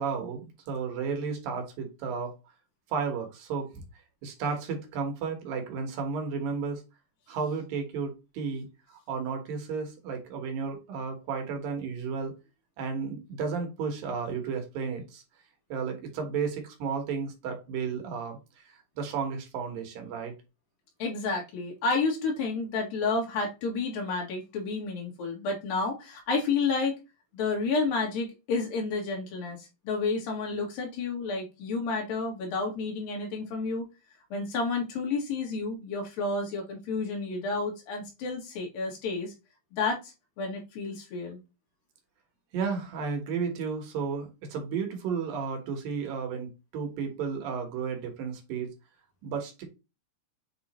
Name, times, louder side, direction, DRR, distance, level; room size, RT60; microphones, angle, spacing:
voice 1, 0.0-2.3 2.9-3.8 4.2-6.8 7.3-8.7 9.1-12.3 12.8-15.2 15.7-20.3 42.5-48.7 49.2-49.6, right 5 dB, 85° right, 4 dB, 3.2 m, -33 dB
voice 2, 21.0-27.0 27.3-33.9 34.3-39.3 39.7-41.4, left 4 dB, 85° left, 1 dB, 3.5 m, -30 dB
7.6 x 3.0 x 4.2 m, 0.27 s
omnidirectional pair, 3.9 m